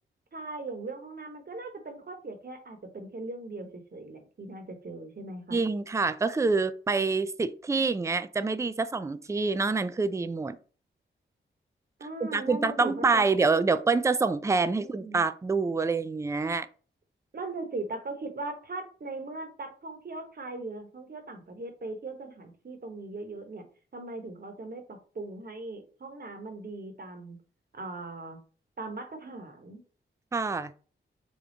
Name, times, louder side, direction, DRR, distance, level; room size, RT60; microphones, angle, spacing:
voice 1, 0.3-5.6 12.0-13.2 14.7-15.2 17.3-23.6 23.9-27.4 27.7-28.4 28.8-29.8, right 2 dB, 50° right, 5 dB, 1.0 m, -39 dB
voice 2, 5.5-10.6 12.2-16.7 30.3-30.7, right 4 dB, 15° right, 13 dB, 0.3 m, -26 dB
3.5 x 2.3 x 3.8 m, 0.39 s
cardioid pair, 45°, 21 cm